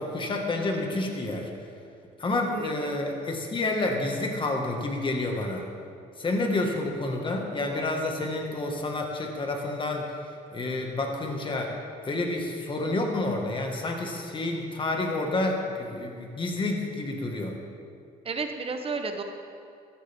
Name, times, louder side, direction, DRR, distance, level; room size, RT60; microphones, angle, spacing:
voice 1, 0.0-1.5 2.2-5.7 6.2-10.1 10.5-11.7 12.0-17.6, left 2 dB, 30° left, 2 dB, 2.0 m, -29 dB
voice 2, 2.3-3.0 18.2-19.2, right 4 dB, 35° right, 5 dB, 1.1 m, -33 dB
14.5 x 12.5 x 3.7 m, 2.4 s
cardioid pair, 110°, 17 cm